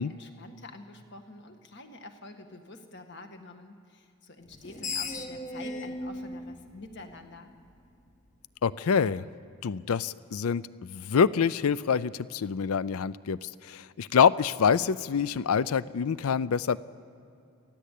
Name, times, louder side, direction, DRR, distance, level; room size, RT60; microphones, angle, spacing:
voice 1, 0.0-7.5, left 2 dB, 50° left, 6 dB, 1.7 m, -47 dB
Screech, 4.5-7.7, left 3 dB, 35° left, 1.2 m, -37 dB
voice 2, 8.6-9.3 9.6-16.8, left 6 dB, 80° left, 18 dB, 0.5 m, -26 dB
27.5 x 15.0 x 8.4 m, 2.6 s
head